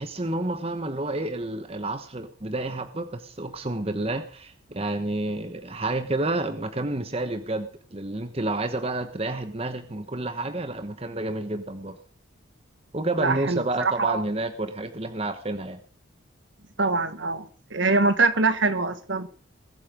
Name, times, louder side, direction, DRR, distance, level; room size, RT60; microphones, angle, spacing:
voice 1, 0.0-12.0 12.9-15.8, right 2 dB, 30° right, 9 dB, 1.1 m, -30 dB
voice 2, 13.2-14.2 16.8-19.3, right 3 dB, 65° right, 11 dB, 1.6 m, -24 dB
21.0 x 8.5 x 5.2 m, 0.42 s
head